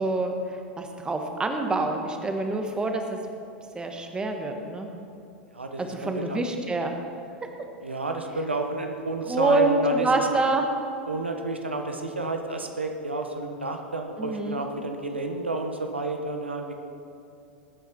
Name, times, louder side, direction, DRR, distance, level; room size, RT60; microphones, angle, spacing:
voice 1, 0.0-3.2 3.7-4.9 5.8-6.9 9.3-10.7 14.2-14.6, right 2 dB, 15° right, 4 dB, 1.5 m, -26 dB
voice 2, 5.5-6.4 7.8-10.3 11.1-16.7, right 2 dB, 85° right, 4 dB, 1.2 m, -30 dB
20.0 x 8.9 x 4.6 m, 2.7 s
figure-of-eight pair, 90°, 6 cm